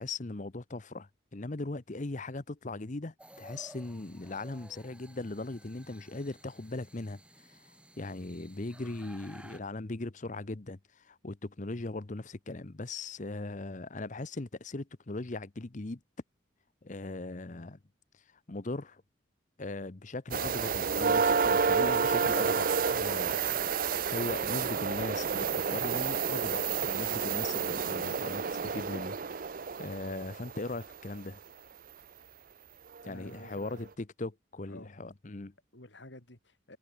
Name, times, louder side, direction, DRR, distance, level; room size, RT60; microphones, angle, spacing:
voice 1, 0.0-16.0 16.8-17.8 18.1-19.0 19.6-23.4 23.7-31.4 33.0-35.5, left 2 dB, 40° left, 0.8 m, -39 dB
sound 1, 3.2-9.6, right 1 dB, 5° right, 6.0 m, -55 dB
sound 2, 20.3-30.9 33.0-33.1 33.6-33.7, right 6 dB, 45° right, 0.6 m, -30 dB
voice 2, 33.0-33.9 34.7-34.9 35.7-36.8, left 1 dB, 65° left, 3.6 m, -51 dB
head